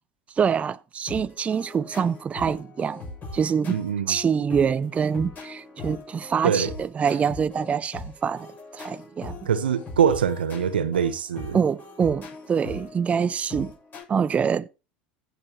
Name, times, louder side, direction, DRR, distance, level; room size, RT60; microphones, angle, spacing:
voice 1, 0.3-3.0 3.3-3.7 4.1-8.5 8.7-9.4 11.5-13.7 14.1-14.7, right 6 dB, 25° right, 0.4 m, -25 dB
sound 1, 1.1-14.0, left 2 dB, 35° left, 7.2 m, -40 dB
voice 2, 3.7-4.2 6.4-6.7 9.4-11.6, right 8 dB, 85° right, 1.0 m, -23 dB
15.5 x 6.5 x 3.1 m
hypercardioid pair, 80°, 5 cm